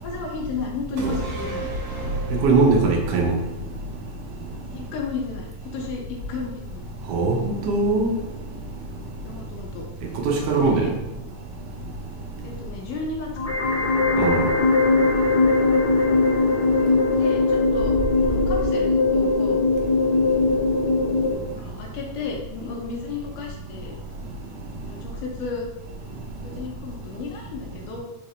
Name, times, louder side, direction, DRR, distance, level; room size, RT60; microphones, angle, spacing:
voice 1, 0.0-1.7 4.7-6.9 9.2-9.9 10.5-10.9 12.4-13.6 16.8-18.0 18.3-19.6 21.5-24.0 24.9-25.7 26.4-28.0, left 4 dB, 85° left, -1 dB, 2.3 m, -33 dB
sound 1, 1.0-4.5 4.9-5.0, right 1 dB, 70° right, 2.2 m, -31 dB
voice 2, 2.3-3.4 7.1-8.1 10.2-10.9 14.2-14.5, right 3 dB, 90° right, -1 dB, 1.3 m, -20 dB
sound 2, 13.4-21.4, left 3 dB, 65° left, 1.3 m, -20 dB
5.3 x 2.9 x 3.0 m, 0.98 s
omnidirectional pair, 3.6 m